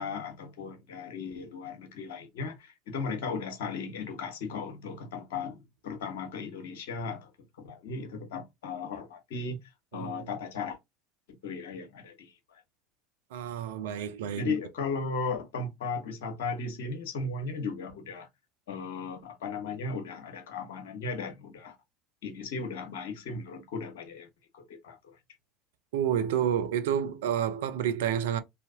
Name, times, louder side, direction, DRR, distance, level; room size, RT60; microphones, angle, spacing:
voice 1, 0.0-7.3 7.6-9.6 9.9-10.8 11.4-12.6 14.4-18.3 18.7-21.8 22.2-24.3 24.5-25.1, left 4 dB, 70° left, 0.9 m, -36 dB
voice 2, 13.3-14.5 25.9-28.4, right 9 dB, 70° right, 0.5 m, -29 dB
3.3 x 2.7 x 2.4 m
figure-of-eight pair, 70°, 0 cm